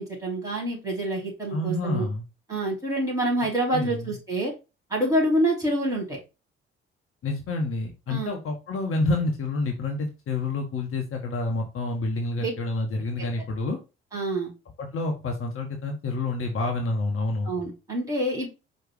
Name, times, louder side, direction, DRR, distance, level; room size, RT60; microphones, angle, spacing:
voice 1, 0.0-2.1 2.5-4.5 4.9-6.2 8.1-8.4 12.4-12.5 14.1-14.5 17.5-18.5, right 1 dB, 10° right, -2 dB, 2.9 m, -26 dB
voice 2, 1.5-2.2 3.7-4.1 7.2-13.8 14.8-17.5, left 2 dB, 45° left, 2 dB, 1.0 m, -28 dB
4.7 x 2.3 x 4.7 m, 0.29 s
figure-of-eight pair, 45°, 31 cm